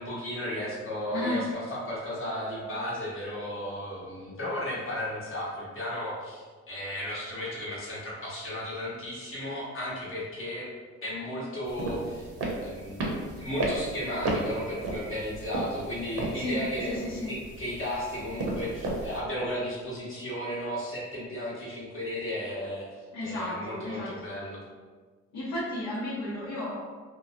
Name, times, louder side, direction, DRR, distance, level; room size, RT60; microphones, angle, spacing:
voice 1, 0.0-10.7 11.0-12.3 12.6-22.9 23.2-24.6, left 1 dB, 45° left, -6 dB, 1.1 m, -34 dB
voice 2, 1.1-1.5 16.3-17.3 23.1-24.3 25.3-26.8, left 1 dB, 70° left, -8 dB, 0.8 m, -33 dB
sound 1, 11.6-19.2, right 2 dB, 50° right, 0.7 m, -34 dB
2.6 x 2.0 x 2.7 m, 1.4 s
cardioid pair, 90°, 30 cm